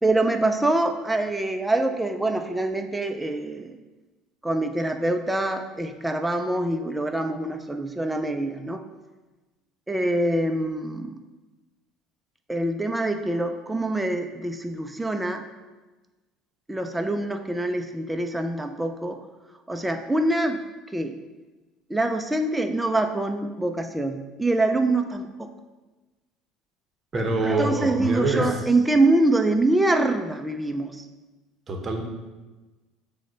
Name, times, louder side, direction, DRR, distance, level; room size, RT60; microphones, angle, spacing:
voice 1, 0.0-3.8 4.4-8.8 9.9-11.1 12.5-15.4 16.7-19.2 19.7-20.6 20.9-21.1 21.9-25.5 27.4-31.1, right 2 dB, 10° right, 6 dB, 0.3 m, -25 dB
voice 2, 27.1-28.5 31.7-32.0, right 2 dB, 30° right, 3 dB, 0.7 m, -25 dB
6.2 x 2.1 x 3.8 m, 1.2 s
supercardioid pair, 90°, 0 cm